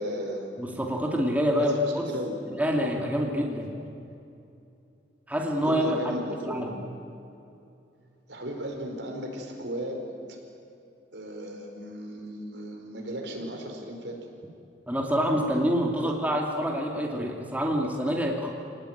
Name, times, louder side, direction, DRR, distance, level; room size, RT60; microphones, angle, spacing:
voice 1, 0.0-0.5 1.5-2.4 5.6-6.7 8.3-10.4 11.1-14.2 16.0-16.1, equal, 75° right, 2 dB, 4.9 m, -35 dB
voice 2, 0.6-2.1 2.6-3.7 5.3-6.0 6.5-6.7 14.9-18.5, equal, 10° right, 0 dB, 2.5 m, -26 dB
28.0 x 19.0 x 9.4 m, 2.7 s
head